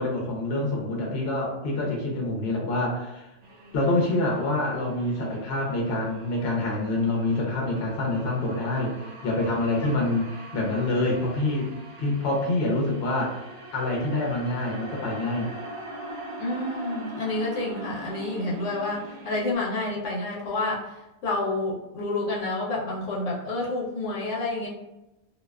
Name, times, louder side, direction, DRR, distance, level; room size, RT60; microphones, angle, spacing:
voice 1, 0.0-3.3 3.7-8.9 9.2-11.7 12.0-13.4 13.7-15.5, left 2 dB, 65° left, -1 dB, 0.8 m, -26 dB
sound 1, 3.4-19.6, right 1 dB, 55° right, 0.4 m, -42 dB
voice 2, 16.4-20.9 21.2-24.7, left 2 dB, 85° left, -3 dB, 1.0 m, -29 dB
2.5 x 2.2 x 2.3 m, 0.95 s
omnidirectional pair, 1.2 m